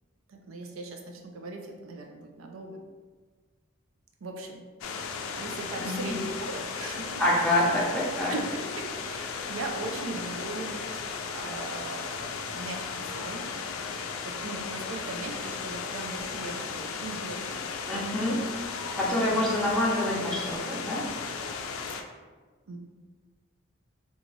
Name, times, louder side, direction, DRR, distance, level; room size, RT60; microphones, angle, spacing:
voice 1, 0.3-2.8 4.2-4.6 4.9-5.0 5.3-7.2 8.3-13.5 13.8-17.7 18.0-18.4 18.9-19.6 22.7-22.8, right 2 dB, 80° right, 2 dB, 0.5 m, -39 dB
sound 1, 4.8-22.0, left 5 dB, 80° left, 0.3 m, -36 dB
voice 2, 5.8-6.1 7.2-8.3 17.9-18.4 19.0-21.0, left 1 dB, 5° left, -7 dB, 0.7 m, -26 dB
3.1 x 2.4 x 3.9 m, 1.4 s
head